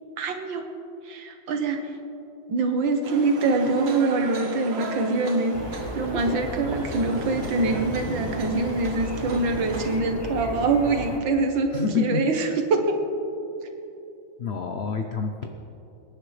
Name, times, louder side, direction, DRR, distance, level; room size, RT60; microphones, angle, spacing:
voice 1, 0.2-0.6 1.1-1.8 2.5-5.6 5.9-13.0, right 3 dB, 75° right, 5 dB, 1.9 m, -24 dB
sound 1, 3.0-10.0, right 2 dB, 40° right, 1.1 m, -37 dB
sound 2, 5.5-11.2, equal, 20° left, 0.6 m, -34 dB
voice 2, 11.7-12.2 14.4-15.5, left 5 dB, 65° left, 4 dB, 0.6 m, -27 dB
24.0 x 10.5 x 3.3 m, 2.8 s
omnidirectional pair, 2.1 m